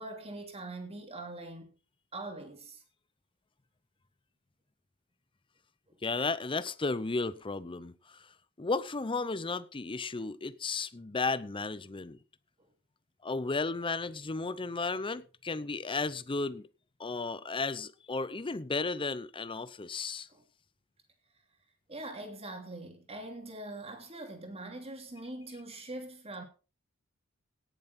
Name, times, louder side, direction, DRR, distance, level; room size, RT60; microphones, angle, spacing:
voice 1, 0.0-1.7 2.1-2.8 20.3-20.4 21.9-26.4, right 2 dB, 25° right, 2.8 m, -43 dB
voice 2, 6.0-8.2 8.6-12.2 13.2-16.7 17.0-20.3, left 3 dB, 25° left, 0.6 m, -34 dB
17.5 x 7.1 x 4.2 m
head